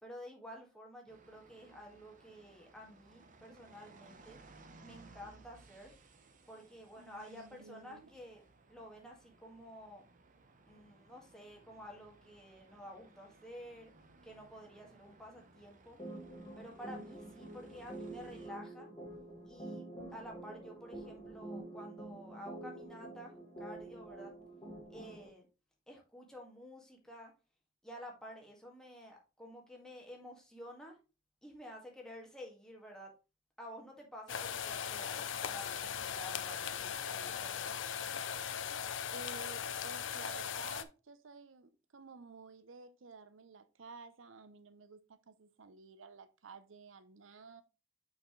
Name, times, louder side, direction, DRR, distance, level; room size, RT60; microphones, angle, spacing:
voice 1, 0.0-4.4 4.8-5.9 6.5-10.0 10.7-13.9 14.2-16.0 16.6-18.9 19.5-19.8 20.1-24.3 24.9-25.5 25.9-27.3 27.8-31.0 31.4-33.1 33.6-37.7, equal, 5° left, 1.9 m, -51 dB
sound 1, 1.1-18.5, right 3 dB, 40° right, 0.9 m, -61 dB
voice 2, 7.0-8.1 39.1-47.6, right 4 dB, 85° right, 0.7 m, -53 dB
sound 2, 16.0-25.3, right 1 dB, 25° left, 2.0 m, -47 dB
sound 3, 34.3-40.8, left 8 dB, 70° left, 0.6 m, -39 dB
6.8 x 5.6 x 3.2 m
head